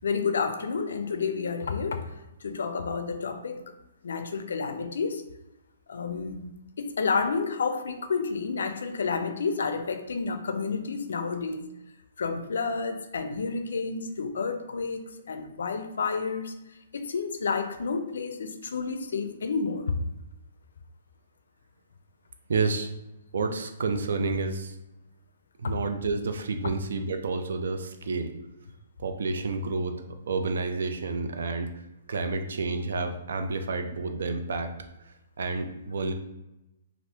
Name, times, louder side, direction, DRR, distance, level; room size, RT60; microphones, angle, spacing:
voice 1, 0.0-2.1 2.4-3.6 4.0-5.2 5.9-6.5 6.8-11.7 12.2-16.5 16.9-19.9, left 5 dB, 85° left, 8 dB, 0.4 m, -30 dB
voice 2, 22.5-22.9 23.3-24.7 25.6-28.3 29.0-31.7 32.1-34.7 35.4-36.1, right 3 dB, 75° right, 6 dB, 0.4 m, -30 dB
2.7 x 2.5 x 3.3 m, 0.95 s
hypercardioid pair, 165°, 0 cm